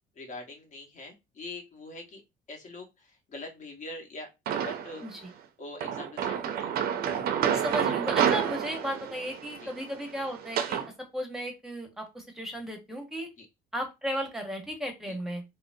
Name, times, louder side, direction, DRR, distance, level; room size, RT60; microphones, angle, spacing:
voice 1, 0.1-2.2 2.5-6.8 9.6-9.7 13.4-13.5 15.1-15.2, left 2 dB, 45° left, 2 dB, 1.1 m, -44 dB
sound 1, 4.5-5.1 5.8-10.9, right 8 dB, 65° right, 0.5 m, -29 dB
voice 2, 7.5-10.8 11.1-13.3 13.7-15.4, equal, ahead, 3 dB, 1.0 m, -35 dB
3.7 x 2.0 x 2.6 m, 0.23 s
cardioid pair, 110°, 17 cm